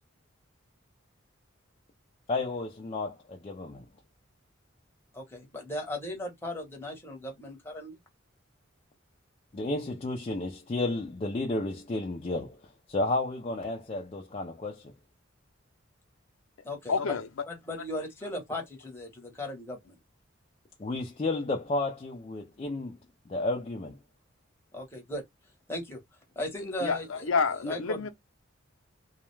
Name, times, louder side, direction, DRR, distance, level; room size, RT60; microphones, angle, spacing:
voice 1, 2.3-3.8 9.5-12.6 12.9-14.9 20.8-23.0 23.3-24.0, left 2 dB, 30° left, 0.4 m, -32 dB
voice 2, 5.1-8.0 16.6-17.0 17.5-19.9 24.7-25.2 25.7-26.0 26.4-27.0 27.7-28.0, left 1 dB, 10° left, 0.8 m, -37 dB
voice 3, 16.9-17.4 17.8-17.9 26.5-28.1, left 4 dB, 85° left, 0.6 m, -29 dB
2.3 x 2.1 x 3.1 m
head